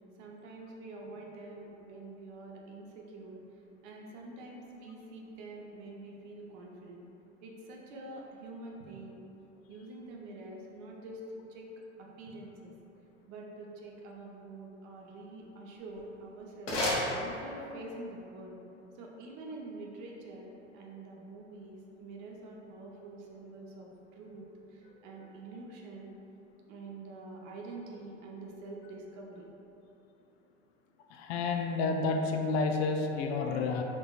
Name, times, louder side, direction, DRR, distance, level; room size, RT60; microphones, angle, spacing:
voice 1, 0.2-3.4 3.8-7.1 7.4-9.2 9.7-11.7 12.0-12.7 13.3-16.8 17.2-18.6 18.9-26.1 26.7-29.5, right 2 dB, 50° right, -1 dB, 0.8 m, -46 dB
sound 1, 15.8-17.9, left 1 dB, 75° left, 1.2 m, -34 dB
voice 2, 31.1-33.8, left 4 dB, 60° left, 3 dB, 0.5 m, -30 dB
4.6 x 3.7 x 2.4 m, 2.9 s
hypercardioid pair, 80°, 36 cm